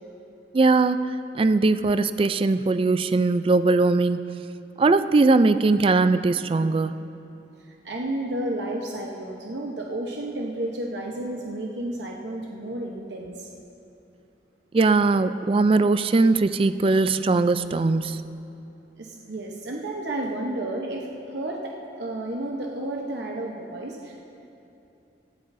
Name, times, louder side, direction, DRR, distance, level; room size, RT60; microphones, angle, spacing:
voice 1, 0.5-4.2 4.8-6.9 14.7-18.2, right 3 dB, 30° right, 12 dB, 0.3 m, -20 dB
voice 2, 7.8-13.5 19.0-24.2, right 1 dB, 75° right, -1 dB, 0.9 m, -32 dB
18.0 x 13.0 x 2.7 m, 2.8 s
head